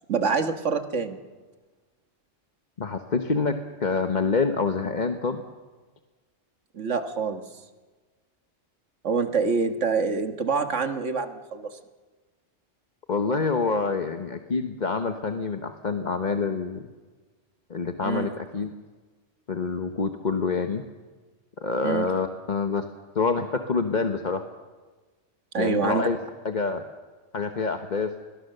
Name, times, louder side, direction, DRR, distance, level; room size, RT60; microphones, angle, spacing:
voice 1, 0.1-1.2 6.7-7.4 9.0-11.8 18.0-18.3 21.8-22.1 25.5-26.1, right 5 dB, 80° right, 7 dB, 1.8 m, -26 dB
voice 2, 2.8-5.4 13.1-16.9 17.7-18.7 19.5-20.8 21.6-22.9 23.1-24.4 25.6-26.2 26.4-26.8 27.3-28.1, left 4 dB, 40° left, 6 dB, 1.1 m, -26 dB
28.5 x 22.0 x 6.7 m, 1.3 s
omnidirectional pair, 1.2 m